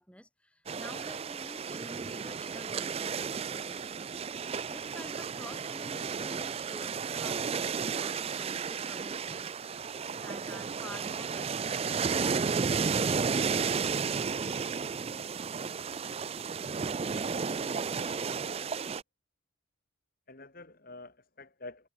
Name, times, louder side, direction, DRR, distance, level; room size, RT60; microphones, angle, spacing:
voice 1, 0.0-3.8 4.7-9.5 10.1-12.5, left 1 dB, 5° left, 3.8 m, -50 dB
sound 1, 0.7-19.0, right 5 dB, 30° right, 0.4 m, -33 dB
voice 2, 17.5-18.6 20.3-21.9, left 2 dB, 45° left, 1.9 m, -49 dB
head